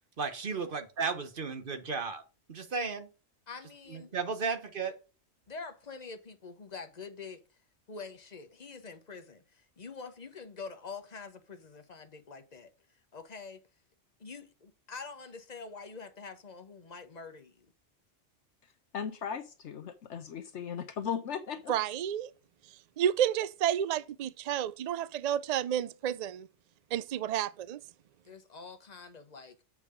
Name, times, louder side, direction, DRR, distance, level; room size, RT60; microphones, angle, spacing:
voice 1, 0.2-2.2 2.5-3.1 3.9-4.9, right 5 dB, 45° right, 1.2 m, -34 dB
voice 2, 3.5-4.2 5.5-7.4 7.9-12.7 13.1-13.6 14.2-17.7 28.2-29.6, left 4 dB, 35° left, 1.0 m, -45 dB
voice 3, 18.9-21.7, left 7 dB, 70° left, 1.0 m, -37 dB
voice 4, 21.7-22.3 23.0-26.5 26.9-27.8, right 10 dB, 90° right, 0.3 m, -30 dB
7.6 x 4.8 x 4.9 m
omnidirectional pair, 1.3 m